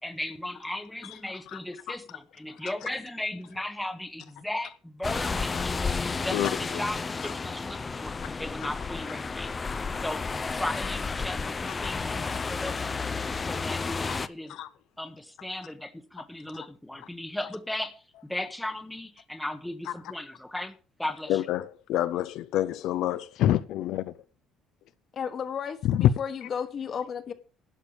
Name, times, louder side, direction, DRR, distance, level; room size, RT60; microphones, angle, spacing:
voice 1, 0.0-5.8 6.2-9.5 10.0-10.2 10.5-13.1 13.5-14.6 15.0-21.4, left 1 dB, 5° left, 1.0 m, -36 dB
sound 1, 5.0-14.3, left 4 dB, 20° left, 0.6 m, -32 dB
voice 2, 14.1-14.7 21.3-24.1 25.8-26.1 26.4-26.5, left 12 dB, 70° left, 0.7 m, -27 dB
voice 3, 25.2-25.8 26.2-27.3, left 7 dB, 40° left, 1.4 m, -32 dB
12.0 x 6.5 x 7.1 m
cardioid pair, 155°, 0 cm